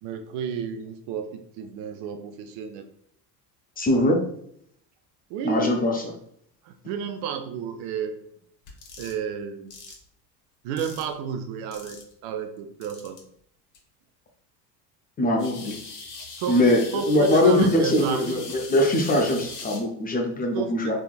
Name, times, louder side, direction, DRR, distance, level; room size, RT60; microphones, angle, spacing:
voice 1, 0.0-2.9 5.3-5.8 6.6-8.2 9.0-10.0 10.6-13.2 16.3-16.6 16.9-18.4 20.5-20.9, right 7 dB, 55° right, 7 dB, 0.5 m, -32 dB
voice 2, 3.8-4.2 5.4-6.1 15.2-15.8 16.5-20.9, left 1 dB, 20° left, 1 dB, 0.5 m, -22 dB
sound 1, 8.7-9.2 9.7-9.9 10.8-11.1 11.7-12.1 12.8-13.2 13.7-13.8 15.4-19.8, left 4 dB, 40° left, 1.1 m, -40 dB
3.4 x 3.0 x 2.3 m, 0.68 s
hypercardioid pair, 70°, 49 cm